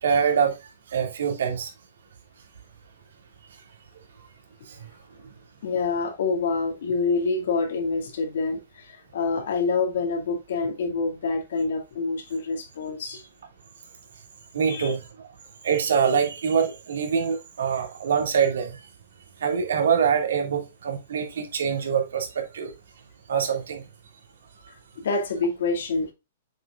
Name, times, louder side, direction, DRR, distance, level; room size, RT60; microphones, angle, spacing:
voice 1, 0.0-0.5 0.9-1.7 14.5-15.3 15.6-18.8 19.4-22.7 23.3-23.8, right 7 dB, 85° right, 2.4 m, -24 dB
voice 2, 5.6-13.2 14.7-15.0 25.0-26.1, left 4 dB, 75° left, 2.3 m, -27 dB
7.4 x 5.9 x 2.5 m
hypercardioid pair, 160°, 0 cm